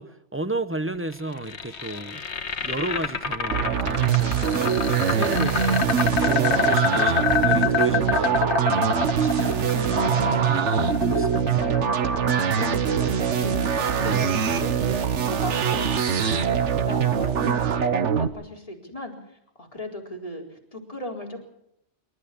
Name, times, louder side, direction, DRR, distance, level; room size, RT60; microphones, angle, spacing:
voice 1, 0.0-2.3 2.6-4.7 5.1-11.6 14.0-14.4, right 2 dB, 10° right, 0.8 m, -33 dB
sound 1, 1.1-13.2, left 5 dB, 65° left, 1.7 m, -27 dB
sound 2, 3.5-18.3, right 7 dB, 75° right, 1.4 m, -23 dB
voice 2, 11.5-19.1 19.6-21.4, left 1 dB, 30° left, 4.3 m, -37 dB
26.0 x 12.5 x 8.6 m
omnidirectional pair, 1.2 m